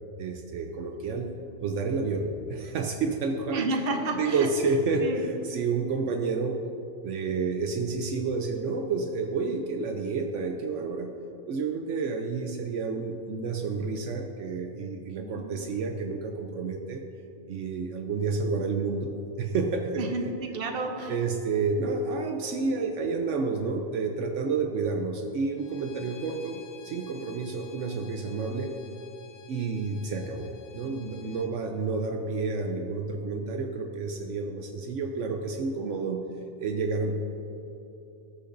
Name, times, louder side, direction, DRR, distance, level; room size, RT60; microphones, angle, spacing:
voice 1, 0.2-1.3 1.6-3.7 4.1-6.6 7.0-11.1 11.5-17.0 17.5-19.1 19.4-20.1 21.1-28.7 29.5-36.2 36.6-37.2, right 4 dB, 75° right, 4 dB, 0.9 m, -30 dB
voice 2, 3.5-4.8 5.0-5.2 15.2-15.9 20.0-21.1 30.8-31.4, right 2 dB, 55° right, 3 dB, 1.1 m, -32 dB
Bowed string instrument, 25.6-31.5, left 6 dB, 70° left, 1.0 m, -52 dB
19.0 x 6.6 x 2.6 m, 3.0 s
omnidirectional pair, 1.3 m